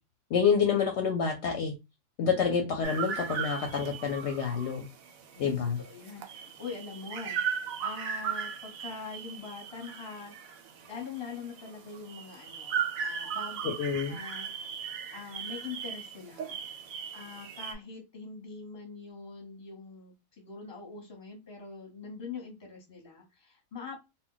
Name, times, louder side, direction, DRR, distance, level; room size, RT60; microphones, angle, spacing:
voice 1, 0.3-1.7 2.2-4.8 5.4-5.8 13.6-14.2, left 6 dB, 65° left, 2 dB, 0.8 m, -28 dB
sound 1, 2.8-17.7, right 7 dB, 90° right, 1.0 m, -37 dB
voice 2, 5.3-10.5 10.9-13.7 14.1-14.5 15.1-16.6 17.1-24.0, left 5 dB, 25° left, 0 dB, 0.8 m, -43 dB
2.2 x 2.1 x 3.8 m, 0.24 s
omnidirectional pair, 1.4 m